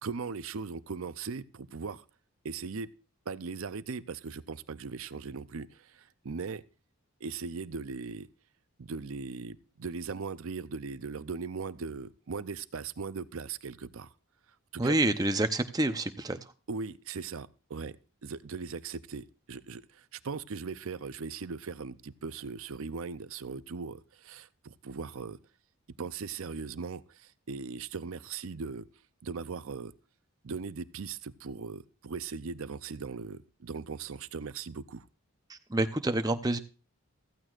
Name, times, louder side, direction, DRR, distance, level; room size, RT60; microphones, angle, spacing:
voice 1, 0.0-2.0 2.4-2.9 3.3-6.6 7.2-8.3 8.8-14.1 14.7-15.0 16.7-25.4 26.0-28.9 29.2-29.9 30.4-35.1, right 5 dB, 70° right, 14 dB, 0.6 m, -39 dB
voice 2, 14.8-16.4 35.5-36.6, right 2 dB, 15° right, 8 dB, 0.7 m, -28 dB
15.0 x 14.5 x 2.5 m, 0.34 s
head